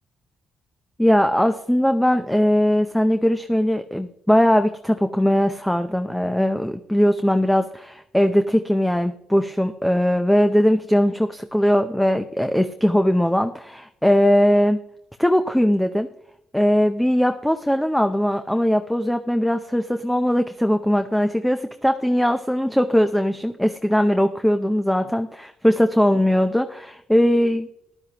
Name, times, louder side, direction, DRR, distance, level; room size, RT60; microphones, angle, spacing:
voice 1, 1.0-14.8 15.2-16.1 16.5-27.7, equal, 5° left, 8 dB, 0.6 m, -20 dB
14.5 x 11.0 x 2.9 m, 0.76 s
cardioid pair, 90°, 0 cm